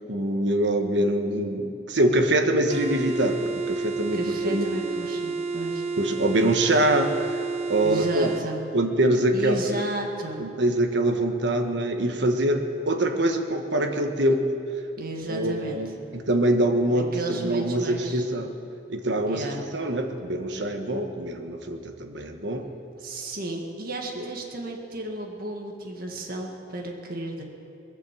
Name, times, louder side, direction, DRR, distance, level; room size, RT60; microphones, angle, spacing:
voice 1, 0.1-4.2 4.4-5.1 6.0-7.4 7.7-8.3 8.7-9.8 10.4-14.4 15.3-18.5 18.9-22.6 24.2-24.3, right 1 dB, 70° right, 5 dB, 1.3 m, -24 dB
sound 1, 2.7-8.5, right 4 dB, 35° right, 0.9 m, -30 dB
voice 2, 4.1-5.8 7.8-8.6 9.3-10.4 15.0-15.8 16.9-18.3 19.2-19.6 23.0-27.4, right 1 dB, 50° right, 1 dB, 1.8 m, -33 dB
21.5 x 7.3 x 7.7 m, 2.6 s
head